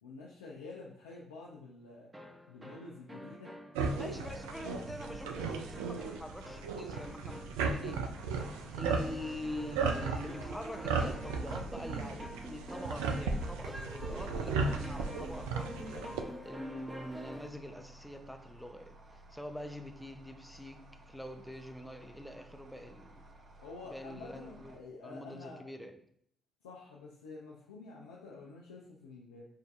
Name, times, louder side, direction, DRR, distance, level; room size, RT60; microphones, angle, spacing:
voice 1, 0.0-2.1 2.5-3.5 4.0-4.9 23.6-25.7 26.6-29.5, left 3 dB, 85° left, -3 dB, 0.4 m, -48 dB
sound 1, 2.1-17.6, equal, 25° right, 1.1 m, -47 dB
sound 2, 3.7-16.2, right 4 dB, 80° right, 0.3 m, -36 dB
voice 2, 3.9-23.3 23.9-26.0, left 1 dB, 5° left, 5 dB, 0.6 m, -45 dB
sound 3, 7.9-24.8, right 1 dB, 55° right, 0.7 m, -56 dB
6.3 x 2.6 x 2.4 m, 0.66 s
hypercardioid pair, 40°, 0 cm